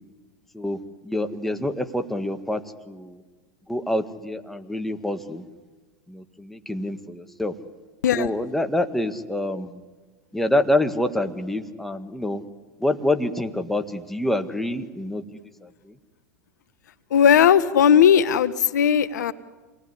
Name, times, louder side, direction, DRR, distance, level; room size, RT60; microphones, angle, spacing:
voice 1, 0.5-3.2 3.7-5.4 6.1-7.6 8.2-9.8 10.3-12.4 12.8-15.9, left 1 dB, ahead, 7 dB, 1.8 m, -27 dB
voice 2, 17.1-19.3, left 8 dB, 80° left, 14 dB, 1.0 m, -17 dB
27.0 x 19.5 x 9.9 m, 1.3 s
hypercardioid pair, 100°, 9 cm